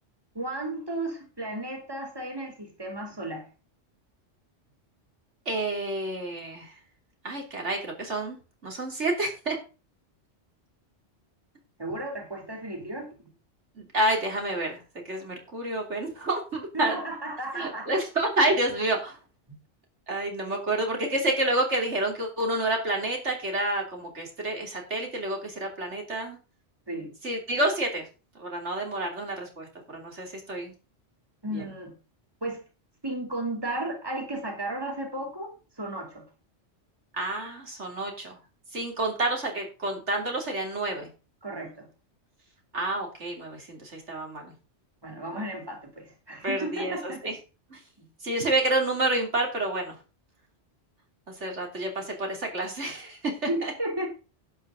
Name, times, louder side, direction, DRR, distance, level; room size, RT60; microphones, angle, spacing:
voice 1, 0.3-3.5 11.8-13.1 16.7-17.9 26.9-27.1 31.4-31.9 32.4-32.6 33.0-36.2 41.4-41.9 45.0-47.3 48.0-48.1 53.5-54.1, right 1 dB, 20° right, 3 dB, 3.3 m, -34 dB
voice 2, 5.4-6.8 7.2-8.4 8.6-9.6 13.8-14.8 15.0-17.0 17.5-19.2 20.1-26.4 27.2-28.0 28.4-30.7 31.5-31.6 37.1-38.4 38.7-41.1 42.7-44.5 45.3-45.4 46.4-47.4 47.7-47.8 48.2-50.0 51.4-53.7, right 1 dB, 70° right, 2 dB, 3.4 m, -29 dB
11.5 x 9.3 x 3.9 m, 0.32 s
omnidirectional pair, 1.2 m